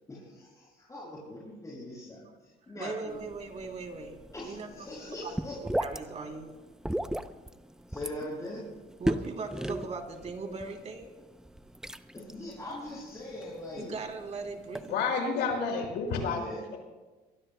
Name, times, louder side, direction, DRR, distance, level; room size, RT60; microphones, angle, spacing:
voice 1, 0.1-3.2 4.3-5.6 7.9-8.6 12.1-13.9 16.3-16.6, left 1 dB, 20° left, -7 dB, 6.6 m, -41 dB
voice 2, 2.6-4.1 4.4-4.7 5.2-5.3 5.6-6.6 7.2-7.3 9.0-11.1 13.8-15.1, right 4 dB, 40° right, 3 dB, 3.2 m, -39 dB
sound 1, 3.1-14.9, right 1 dB, 5° right, 0.6 m, -38 dB
voice 3, 14.9-16.4, left 5 dB, 85° left, 1 dB, 5.7 m, -29 dB
24.0 x 23.5 x 2.3 m, 1.2 s
cardioid pair, 110°, 17 cm